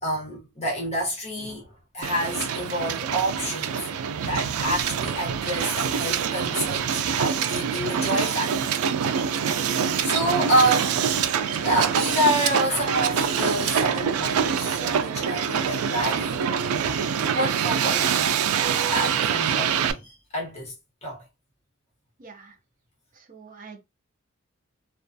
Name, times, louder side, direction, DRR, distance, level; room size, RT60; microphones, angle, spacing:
voice 1, 0.0-1.7 1.9-3.9 4.2-6.9 7.2-8.7 9.6-11.0 11.6-16.5 17.3-18.4 18.9-20.7 21.0-21.2, right 1 dB, 30° left, 0.9 m, -28 dB
Hiss, 2.0-19.9, right 7 dB, 85° right, 0.3 m, -25 dB
voice 2, 22.2-22.5 23.2-23.8, right 5 dB, 40° right, 0.5 m, -45 dB
2.4 x 2.2 x 2.6 m
head